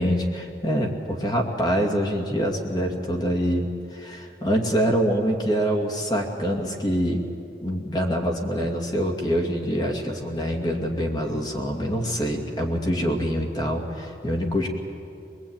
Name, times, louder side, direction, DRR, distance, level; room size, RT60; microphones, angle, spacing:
voice 1, 0.0-7.2 7.6-14.7, equal, 25° left, 1 dB, 2.5 m, -25 dB
23.0 x 22.0 x 9.0 m, 2.7 s
head